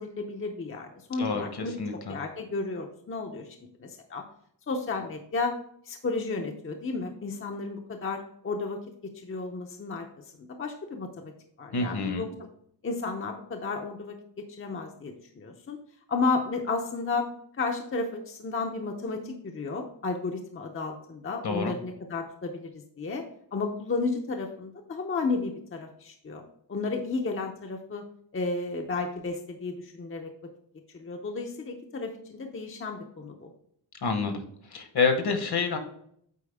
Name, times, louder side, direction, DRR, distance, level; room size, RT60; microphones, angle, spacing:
voice 1, 0.0-1.8 2.1-4.2 4.7-5.5 5.8-11.3 11.6-12.5 12.8-15.8 16.1-17.3 17.6-23.2 23.5-26.4 26.7-28.0 28.3-30.3 30.9-33.5, left 3 dB, 30° left, 3 dB, 0.6 m, -33 dB
voice 2, 1.2-2.2 11.7-12.2 21.4-21.7 34.0-34.4 34.7-35.8, left 4 dB, 60° left, 6 dB, 1.2 m, -28 dB
8.4 x 4.6 x 3.4 m, 0.68 s
wide cardioid pair, 170°, 43 cm